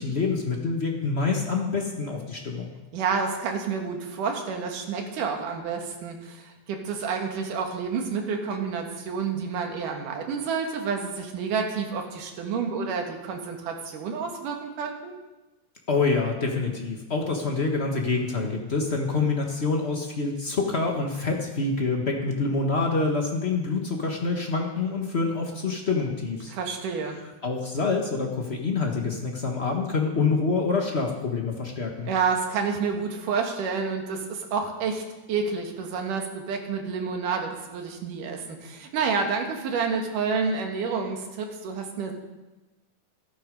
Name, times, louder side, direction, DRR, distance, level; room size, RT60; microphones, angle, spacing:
voice 1, 0.0-2.7 15.9-26.5 27.4-32.1, left 4 dB, 70° left, 1 dB, 0.6 m, -26 dB
voice 2, 2.9-15.1 26.5-27.2 32.1-35.0 35.3-42.1, right 5 dB, 85° right, 3 dB, 3.2 m, -29 dB
14.0 x 11.5 x 5.3 m, 1.1 s
omnidirectional pair, 3.6 m